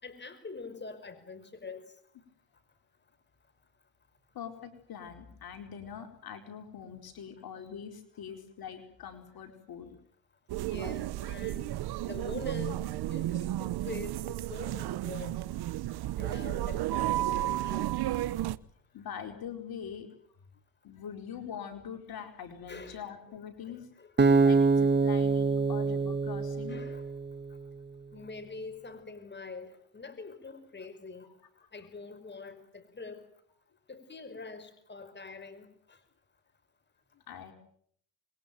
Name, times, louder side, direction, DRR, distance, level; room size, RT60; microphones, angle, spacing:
voice 1, 0.0-1.8 10.6-11.7 12.0-15.4 16.2-17.9 22.7-23.1 23.7-24.1 26.7-27.0 28.1-31.3 31.7-33.2 33.9-36.0, left 4 dB, 25° left, 11 dB, 5.3 m, -44 dB
voice 2, 4.3-10.0 18.9-20.1 20.8-23.9 24.4-26.8 37.1-37.5, left 8 dB, 55° left, 5 dB, 4.7 m, -43 dB
sound 1, 10.5-18.6, right 14 dB, 60° right, 1.2 m, -33 dB
Acoustic guitar, 24.2-27.4, right 4 dB, 25° right, 1.6 m, -25 dB
27.0 x 22.5 x 9.1 m, 0.67 s
cardioid pair, 95°, 43 cm